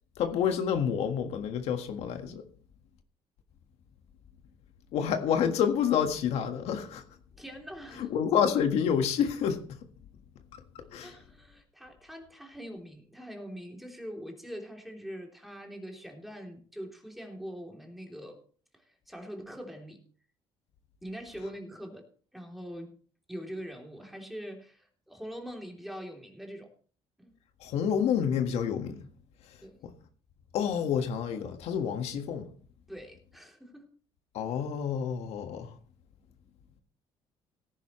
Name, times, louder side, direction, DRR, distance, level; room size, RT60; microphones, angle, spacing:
voice 1, 0.2-2.4 4.9-7.0 8.0-9.8 10.9-11.1 27.6-29.1 29.8-29.9 30.5-32.5 34.3-35.8, left 8 dB, 75° left, 1.6 m, -28 dB
voice 2, 7.4-8.1 11.0-18.4 18.7-20.0 21.0-22.9 23.3-26.7 27.2-27.3 29.6-29.8 32.9-33.9, equal, ahead, 3.1 m, -43 dB
18.0 x 10.5 x 3.1 m
cardioid pair, 115°, 11 cm